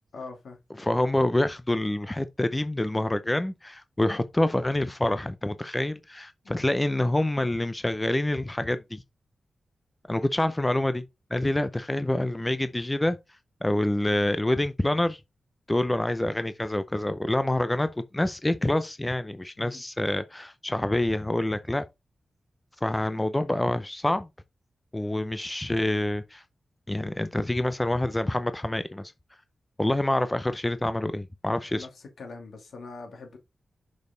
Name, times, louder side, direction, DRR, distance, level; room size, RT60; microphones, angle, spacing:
voice 1, 0.1-0.6 6.4-6.7 19.6-19.8 31.7-33.4, left 3 dB, 80° left, 2.4 m, -43 dB
voice 2, 0.8-9.0 10.1-11.0 11.3-13.2 13.6-15.2 15.7-21.8 22.8-24.3 24.9-26.4 26.9-29.1 29.8-31.9, left 1 dB, 15° left, 0.5 m, -27 dB
6.3 x 5.3 x 3.8 m
wide cardioid pair, 135°, 0 cm